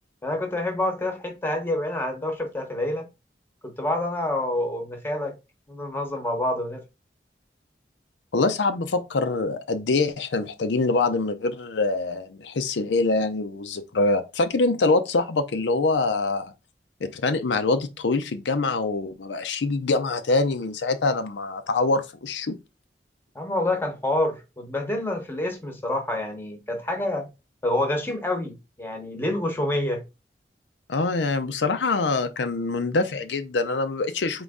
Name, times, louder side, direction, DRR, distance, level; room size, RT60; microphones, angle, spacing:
voice 1, 0.2-3.0 3.6-5.4 5.7-6.8 23.3-27.3 27.6-30.0, left 1 dB, 10° left, 0.8 m, -27 dB
voice 2, 8.3-16.5 17.0-22.5 30.9-34.4, left 3 dB, 90° left, 0.5 m, -24 dB
3.8 x 3.0 x 3.5 m
head